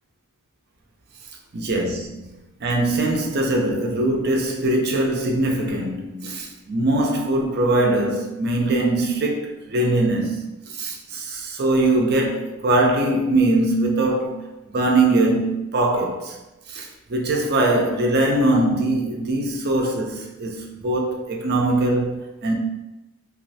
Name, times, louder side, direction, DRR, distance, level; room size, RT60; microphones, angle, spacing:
voice 1, 1.5-16.4 16.7-22.5, right 2 dB, 50° right, 0.5 m, -22 dB
3.1 x 2.5 x 2.7 m
head